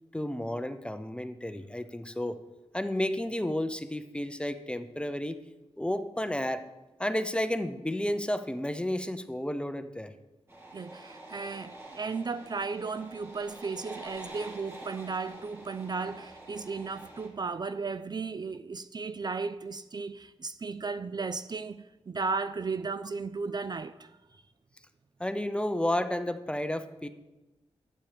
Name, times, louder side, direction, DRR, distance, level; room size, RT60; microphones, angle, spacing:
voice 1, 0.1-2.4 2.7-5.4 5.8-6.6 7.0-10.1 25.2-27.1, left 1 dB, 10° left, 0.6 m, -31 dB
sound 1, 10.5-17.3, right 1 dB, 25° right, 2.4 m, -47 dB
voice 2, 10.7-24.1, right 4 dB, 40° right, 0.4 m, -35 dB
8.8 x 7.3 x 5.0 m
cardioid pair, 75°, 11 cm